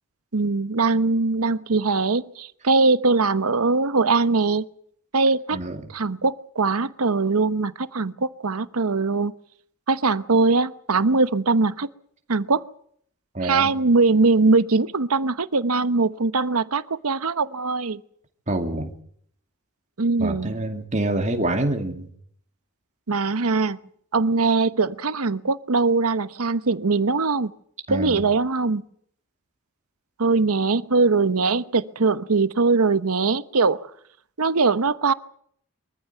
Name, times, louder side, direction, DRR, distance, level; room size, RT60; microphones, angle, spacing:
voice 1, 0.3-4.6 5.1-5.6 5.9-9.3 9.9-11.9 12.3-12.6 13.4-18.0 20.0-20.5 23.1-23.8 24.1-27.5 27.9-28.8 30.2-33.8 34.4-35.1, right 3 dB, 85° right, 1.0 m, -21 dB
voice 2, 5.5-5.9 13.3-13.7 18.5-18.9 20.2-22.1 27.9-28.3, right 1 dB, 35° right, 2.5 m, -26 dB
24.0 x 15.0 x 9.3 m
head